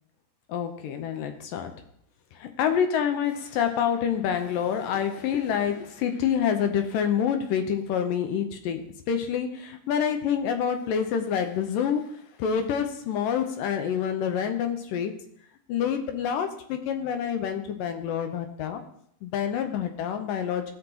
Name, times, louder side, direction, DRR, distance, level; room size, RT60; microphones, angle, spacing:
voice 1, 0.5-1.7 2.4-8.8 9.1-12.0 12.4-15.1 15.7-18.8 19.2-20.7, left 8 dB, 80° left, 6 dB, 2.5 m, -27 dB
16.5 x 5.9 x 2.9 m, 0.69 s
omnidirectional pair, 4.0 m